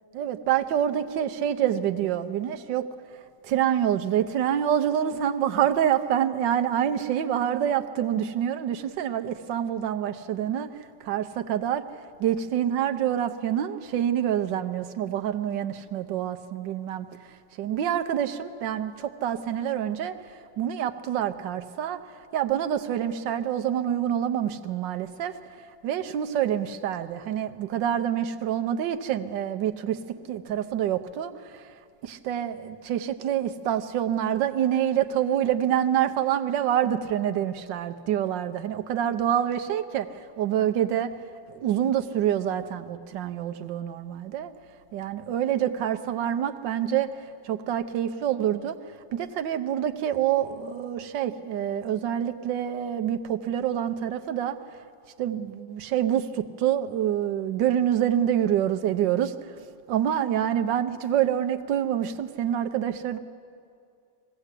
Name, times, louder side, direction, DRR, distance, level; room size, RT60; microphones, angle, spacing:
voice 1, 0.1-2.8 3.4-11.8 12.2-17.1 17.6-22.0 22.3-30.0 30.3-31.7 32.0-41.1 41.5-44.5 44.9-48.8 49.1-54.6 55.2-63.2, right 10 dB, 90° right, 8 dB, 1.5 m, -27 dB
21.5 x 16.0 x 8.2 m, 2.3 s
omnidirectional pair, 1.9 m